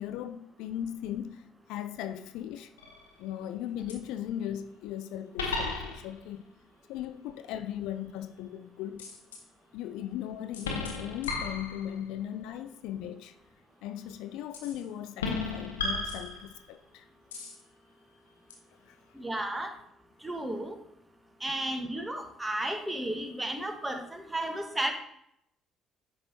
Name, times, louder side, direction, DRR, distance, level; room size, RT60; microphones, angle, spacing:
voice 1, 0.0-2.7 3.2-6.4 6.9-9.1 9.7-13.3 13.8-17.0 18.9-19.0, left 11 dB, 70° left, 0.4 m, -38 dB
sound 1, 2.8-3.2 3.9-4.0 5.4-6.3 9.0-9.4 10.5-12.1 14.5-14.8 15.2-16.8 17.3-17.6 18.5-18.6, left 3 dB, 85° left, 0.9 m, -34 dB
voice 2, 19.1-19.7 20.2-20.7 21.4-24.9, right 1 dB, 15° right, 1.3 m, -33 dB
10.0 x 5.2 x 2.7 m
hypercardioid pair, 50°, 0 cm